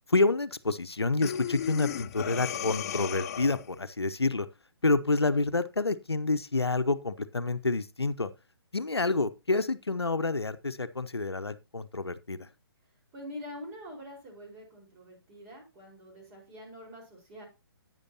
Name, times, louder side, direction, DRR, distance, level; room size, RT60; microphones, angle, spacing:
voice 1, 0.1-4.5 4.8-8.3 8.7-12.4, left 3 dB, 85° left, 0.7 m, -28 dB
Breathing, 1.2-3.8, left 9 dB, 40° left, 0.4 m, -35 dB
voice 2, 13.1-17.4, left 1 dB, 25° right, 4.6 m, -45 dB
11.5 x 9.0 x 2.8 m
figure-of-eight pair, 135°, 13 cm